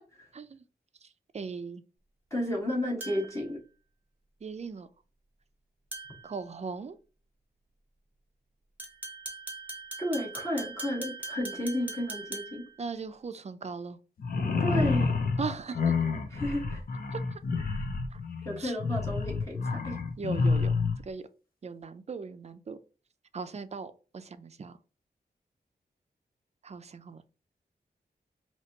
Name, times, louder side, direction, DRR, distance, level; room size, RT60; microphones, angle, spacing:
voice 1, 0.3-0.6 1.0-1.8 4.4-4.9 6.2-7.0 12.8-14.0 15.4-15.9 17.1-17.4 18.1-18.2 18.6-18.8 20.2-21.3 21.6-22.8 23.3-24.8 26.6-27.2, right 5 dB, 40° right, 0.5 m, -39 dB
voice 2, 2.3-3.6 10.0-12.6 14.6-15.3 16.3-16.8 18.4-20.0, left 1 dB, 20° left, 1.5 m, -32 dB
sound 1, 3.0-3.4 5.9-6.3 8.8-12.7, right 2 dB, 10° right, 1.1 m, -41 dB
sound 2, 14.2-21.0, left 4 dB, 65° left, 0.8 m, -29 dB
4.5 x 2.9 x 2.9 m
wide cardioid pair, 130°, 16 cm